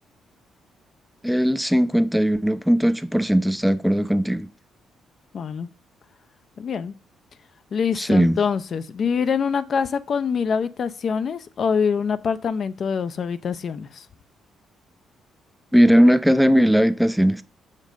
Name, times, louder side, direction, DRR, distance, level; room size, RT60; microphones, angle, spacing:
voice 1, 1.2-4.5 8.0-8.4 15.7-17.4, equal, ahead, 0.4 m, -18 dB
voice 2, 5.3-5.7 6.6-6.9 7.7-14.1, left 6 dB, 55° left, 0.6 m, -25 dB
6.3 x 5.3 x 5.3 m
cardioid pair, 90°, 0 cm